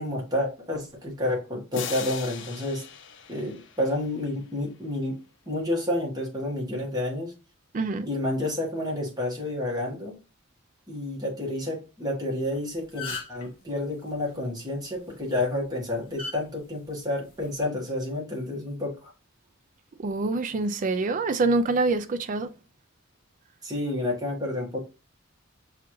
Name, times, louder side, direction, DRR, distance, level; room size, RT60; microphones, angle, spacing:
voice 1, 0.0-2.8 3.3-5.2 5.5-7.3 8.0-10.1 10.9-19.1 23.6-24.8, left 1 dB, 20° right, 1.3 m, -30 dB
sound 1, 1.7-4.5, left 7 dB, 60° left, 0.5 m, -39 dB
voice 2, 7.7-8.1 20.0-22.5, right 3 dB, 40° right, 0.4 m, -25 dB
sound 2, 12.4-12.5 12.8-13.5 15.1-15.3 16.2-16.4 17.4-17.6, left 4 dB, 25° left, 1.5 m, -35 dB
6.0 x 2.4 x 3.0 m
head